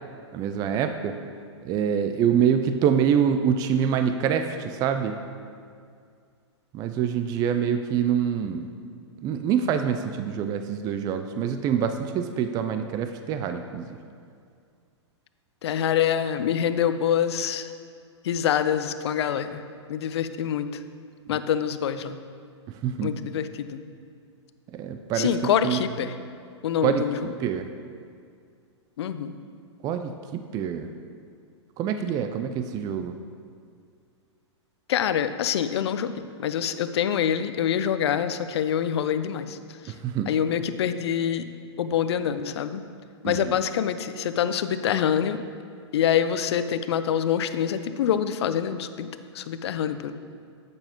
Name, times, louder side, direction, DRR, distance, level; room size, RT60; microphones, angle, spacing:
voice 1, 0.3-1.2 1.6-5.2 6.7-8.7 9.2-14.0 22.7-23.1 24.7-25.3 25.6-25.8 26.8-27.0 27.4-27.7 29.8-30.9 31.8-33.2 39.9-40.3 43.2-43.6, right 8 dB, 25° right, 8 dB, 0.4 m, -25 dB
voice 2, 15.6-17.7 18.2-19.6 19.9-20.7 21.3-22.2 23.0-23.8 25.1-26.1 26.6-27.3 29.0-29.4 34.9-39.6 39.8-39.9 40.3-41.5 41.8-42.8 43.2-45.4 45.9-50.1, left 9 dB, 65° left, 11 dB, 0.5 m, -25 dB
8.7 x 7.8 x 3.0 m, 2.2 s
hypercardioid pair, 120°, 15 cm